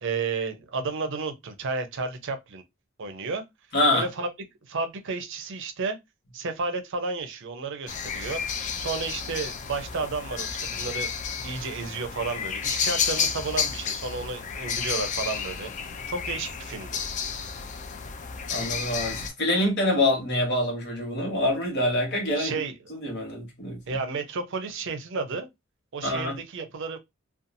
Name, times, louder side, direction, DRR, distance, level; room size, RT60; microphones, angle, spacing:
voice 1, 0.0-2.6 3.0-3.4 3.9-4.3 4.7-6.0 6.3-8.4 8.7-11.1 11.4-15.7 16.1-17.0 22.4-22.8 23.9-25.5 25.9-27.0, right 4 dB, 65° right, 0.5 m, -32 dB
voice 2, 3.7-4.1 18.5-22.6 22.9-24.0 26.0-26.4, left 1 dB, 55° left, 1.3 m, -26 dB
sound 1, 7.9-19.3, left 6 dB, 35° left, 0.3 m, -31 dB
2.6 x 2.3 x 2.6 m
head